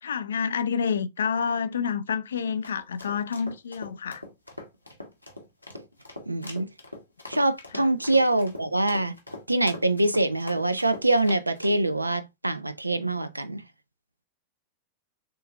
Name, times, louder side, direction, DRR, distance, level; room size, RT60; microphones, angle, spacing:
voice 1, 0.0-4.2 7.7-7.9, left 6 dB, 70° left, 0.3 m, -28 dB
sound 1, 2.4-11.8, left 1 dB, 90° left, 0.8 m, -42 dB
voice 2, 6.3-6.7 7.3-9.2 9.5-13.6, right 2 dB, 85° right, 0.4 m, -24 dB
6.5 x 2.5 x 2.3 m
figure-of-eight pair, 90°, 0 cm